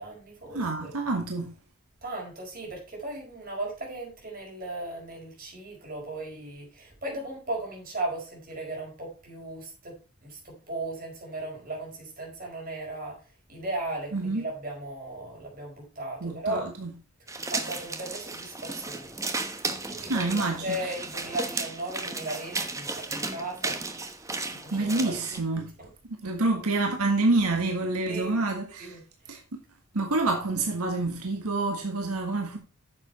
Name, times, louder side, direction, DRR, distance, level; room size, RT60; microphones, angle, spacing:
voice 1, 0.0-0.9 2.0-16.7 17.5-19.2 19.6-23.8 24.5-25.5 25.8-25.9 28.1-28.5 28.8-29.1, right 2 dB, 40° right, 4.9 m, -37 dB
voice 2, 0.5-1.5 14.1-14.4 16.2-16.9 20.1-20.8 24.7-25.7 26.2-29.0 29.3-29.4 29.9-32.6, right 2 dB, 90° right, 1.6 m, -27 dB
sound 1, 17.3-25.4, right 3 dB, 15° right, 1.0 m, -34 dB
9.5 x 7.1 x 4.2 m
head